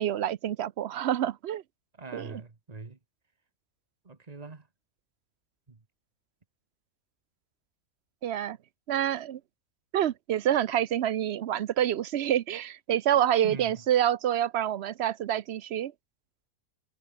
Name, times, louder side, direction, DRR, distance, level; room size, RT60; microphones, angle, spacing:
voice 1, 0.0-1.6 2.1-2.4 8.2-8.6 8.9-9.4 9.9-15.9, right 11 dB, 60° right, 0.8 m, -27 dB
voice 2, 2.0-3.0 4.0-4.7 5.7-5.8 13.4-13.8, right 4 dB, 30° right, 1.6 m, -42 dB
omnidirectional pair, 1.4 m